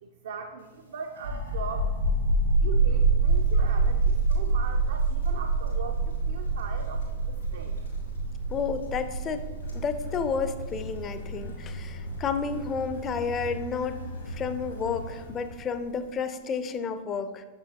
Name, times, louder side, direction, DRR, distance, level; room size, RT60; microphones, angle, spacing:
voice 1, 0.0-1.9 2.6-7.8, right 5 dB, 60° right, 4 dB, 0.4 m, -40 dB
sound 1, 1.2-14.5, right 3 dB, 85° right, 1.0 m, -26 dB
Wind, 3.0-15.8, left 1 dB, 85° left, 2.0 m, -42 dB
voice 2, 8.5-9.5 9.7-14.0 14.3-17.4, left 6 dB, 25° left, 10 dB, 0.4 m, -31 dB
sound 2, 9.6-15.4, right 1 dB, 65° left, 1.1 m, -41 dB
7.0 x 6.1 x 2.8 m, 1.3 s
figure-of-eight pair, 90°, 0 cm